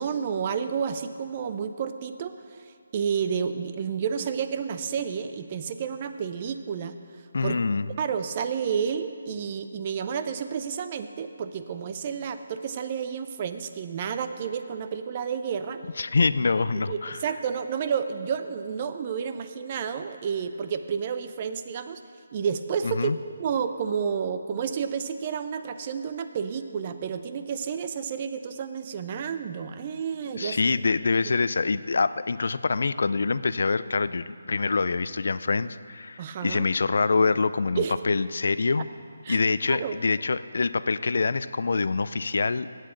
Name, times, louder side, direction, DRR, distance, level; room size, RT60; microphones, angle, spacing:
voice 1, 0.0-2.6 2.9-7.0 7.4-7.6 8.0-15.8 16.9-22.0 22.3-23.1 23.4-30.6 36.2-36.6 37.8-37.9 39.2-39.4 39.7-39.9, right 7 dB, 35° right, 9 dB, 0.5 m, -30 dB
voice 2, 7.3-7.9 16.0-17.2 22.8-23.2 30.4-38.9 39.3-42.7, left 4 dB, 65° left, 15 dB, 0.3 m, -25 dB
8.2 x 8.2 x 7.7 m, 2.4 s
figure-of-eight pair, 155°, 0 cm